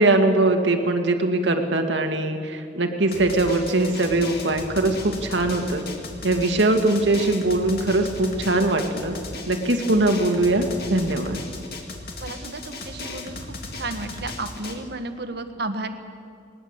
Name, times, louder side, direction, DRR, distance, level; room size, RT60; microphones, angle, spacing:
voice 1, 0.0-5.8 6.2-9.2 9.5-11.4, right 2 dB, 85° right, 4 dB, 2.0 m, -21 dB
Drum, 3.1-14.7, left 2 dB, 60° left, 2.3 m, -36 dB
voice 2, 12.2-13.4 13.7-15.9, right 2 dB, 65° right, 7 dB, 1.5 m, -32 dB
20.0 x 19.5 x 8.1 m, 2.4 s
head